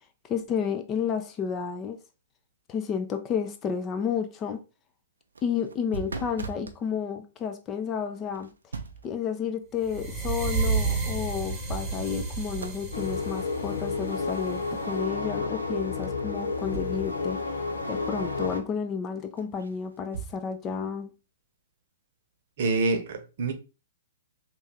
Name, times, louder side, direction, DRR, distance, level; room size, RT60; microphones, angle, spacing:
voice 1, 0.3-2.0 2.7-4.6 5.4-8.5 9.0-17.4 17.9-21.1, left 7 dB, 25° left, 0.5 m, -31 dB
sound 1, 5.2-6.8 8.3-9.2 11.0-11.1 11.4-12.3 12.6-12.9 16.0-17.1 17.4-17.5 19.4-20.4, right 6 dB, 70° right, 0.4 m, -39 dB
sound 2, 9.8-14.9, right 4 dB, 15° right, 1.0 m, -31 dB
sound 3, 12.9-18.6, left 3 dB, 75° left, 0.7 m, -31 dB
voice 2, 22.6-23.5, right 3 dB, 50° right, 0.8 m, -26 dB
3.3 x 2.6 x 3.3 m
figure-of-eight pair, 115°, 0 cm